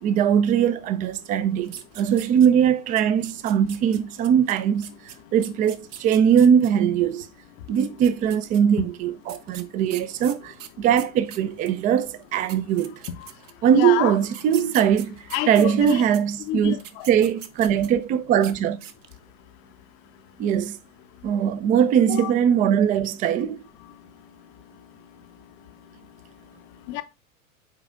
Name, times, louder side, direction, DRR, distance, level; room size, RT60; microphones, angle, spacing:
voice 1, 0.0-4.9 5.3-7.3 7.7-13.0 13.6-16.8 17.1-18.8 20.4-20.8 21.2-23.6, right 8 dB, 20° right, 0.4 m, -21 dB
sound 1, 1.6-2.7 3.0-6.7 7.7-8.6 9.3-11.8 12.2-12.3 12.5-13.7 14.3-16.2 16.7-18.0 18.4-18.5 18.8-19.2, right 10 dB, 60° right, 1.0 m, -41 dB
voice 2, 13.7-14.2 15.3-16.0 16.5-17.1 22.1-22.3 26.9-27.0, left 16 dB, 40° left, 0.7 m, -28 dB
7.3 x 4.9 x 3.6 m
figure-of-eight pair, 90°, 42 cm